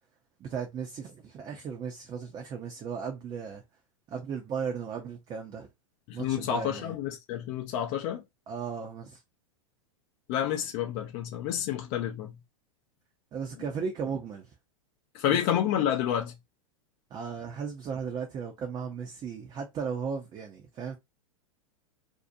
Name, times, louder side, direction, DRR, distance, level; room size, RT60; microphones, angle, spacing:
voice 1, 0.4-3.6 4.1-5.7 6.1-7.0 8.5-9.2 13.3-14.5 15.3-15.4 17.1-21.0, right 6 dB, 25° right, 0.6 m, -36 dB
voice 2, 6.1-8.2 10.3-12.3 15.1-16.3, left 10 dB, 45° left, 0.5 m, -29 dB
2.7 x 2.0 x 2.5 m
hypercardioid pair, 110°, 17 cm